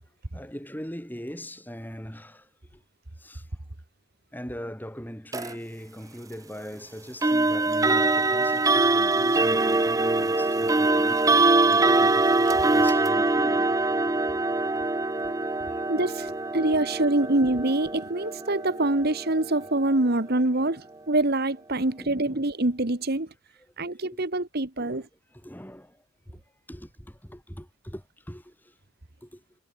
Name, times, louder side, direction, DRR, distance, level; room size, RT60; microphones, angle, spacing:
voice 1, 0.3-2.8 3.2-3.5 4.3-13.7 15.2-15.8 16.3-16.4 22.0-22.4 24.0-24.3 24.8-26.0 26.3-26.4 26.7-28.7 29.2-29.4, equal, 10° left, 7.0 m, -41 dB
sound 1, 5.3-5.5 7.2-20.0, right 2 dB, 15° right, 0.6 m, -23 dB
voice 2, 15.9-23.3 23.8-25.0, right 2 dB, 50° right, 1.5 m, -25 dB
head